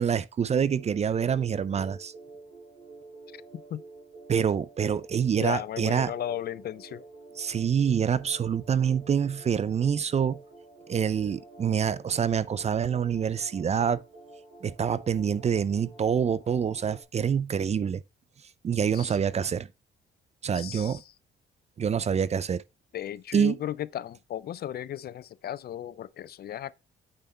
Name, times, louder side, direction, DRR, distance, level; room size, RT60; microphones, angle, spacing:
voice 1, 0.0-2.1 4.3-6.1 7.4-10.4 10.9-14.0 14.6-18.0 18.6-19.7 20.4-21.0 21.8-22.6 23.3-23.6, right 7 dB, 35° right, 0.4 m, -26 dB
sound 1, 0.5-17.0, right 3 dB, 75° right, 4.1 m, -49 dB
voice 2, 5.4-7.0 18.9-19.2 20.5-21.0 22.9-26.7, left 11 dB, 50° left, 0.4 m, -35 dB
8.8 x 3.5 x 4.2 m
cardioid pair, 90°, 20 cm